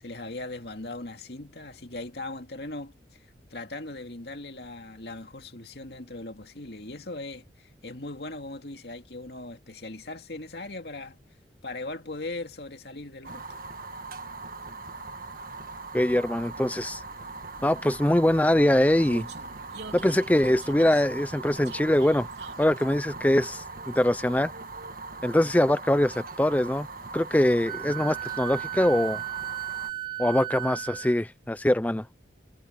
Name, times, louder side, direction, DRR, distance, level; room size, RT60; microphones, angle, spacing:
voice 1, 0.0-11.2 11.6-13.4, left 2 dB, 65° left, 2.2 m, -39 dB
Fire, 13.2-29.9, right 3 dB, 50° right, 1.9 m, -40 dB
Vehicle, 14.0-25.2, right 2 dB, 75° right, 3.7 m, -49 dB
voice 2, 15.9-17.0 17.6-19.3 19.9-22.3 22.6-24.5 25.2-26.9 27.1-29.2 30.2-32.1, left 1 dB, 10° left, 0.4 m, -23 dB
Wind instrument woodwind instrument, 27.6-31.2, right 14 dB, 30° right, 3.5 m, -35 dB
head